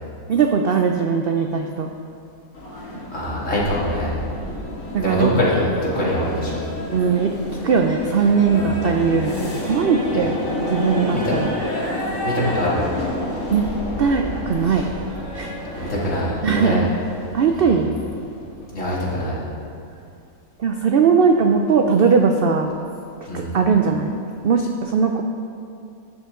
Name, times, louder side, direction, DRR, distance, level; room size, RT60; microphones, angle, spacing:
voice 1, 0.3-1.9 4.9-5.4 6.9-7.3 7.6-10.4 10.7-11.5 13.5-13.7 14.0-14.9 15.3-15.9 16.4-16.9 17.3-17.9 20.6-22.8 23.3-24.1 24.4-25.2, right 5 dB, 70° right, 4 dB, 0.5 m, -19 dB
sound 1, 2.5-18.8, left 1 dB, 85° left, 3.3 m, -30 dB
voice 2, 3.1-4.1 5.0-6.6 8.5-9.0 10.1-10.2 11.1-11.3 12.2-12.8 14.7-14.8 15.7-16.8 17.5-17.8 18.7-19.4 23.3-23.5, left 1 dB, 55° left, -7 dB, 2.7 m, -24 dB
12.0 x 8.1 x 3.7 m, 2.5 s
omnidirectional pair, 1.6 m